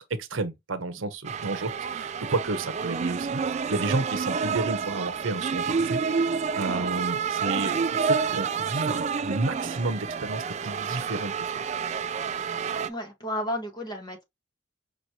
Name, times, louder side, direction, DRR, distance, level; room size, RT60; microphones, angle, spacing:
voice 1, 0.1-11.5, right 2 dB, 80° right, 0.8 m, -31 dB
sound 1, 1.2-12.9, right 5 dB, 35° right, 0.3 m, -29 dB
voice 2, 12.8-14.2, left 1 dB, 20° left, 1.2 m, -32 dB
5.1 x 3.1 x 2.7 m
head